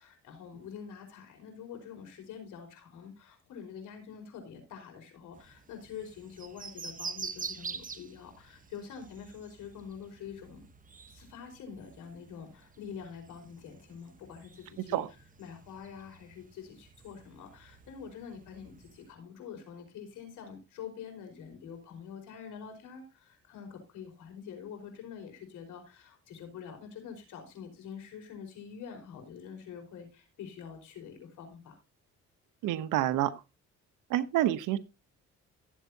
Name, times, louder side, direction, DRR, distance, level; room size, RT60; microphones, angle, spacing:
voice 1, 0.0-10.6 11.1-15.0 15.4-31.8, left 7 dB, 85° left, 4.9 m, -46 dB
sound 1, 5.3-19.1, right 5 dB, 25° right, 1.0 m, -47 dB
voice 2, 32.6-33.4 34.1-34.8, right 13 dB, 90° right, 1.0 m, -28 dB
15.0 x 8.2 x 2.8 m
cardioid pair, 90°, 30 cm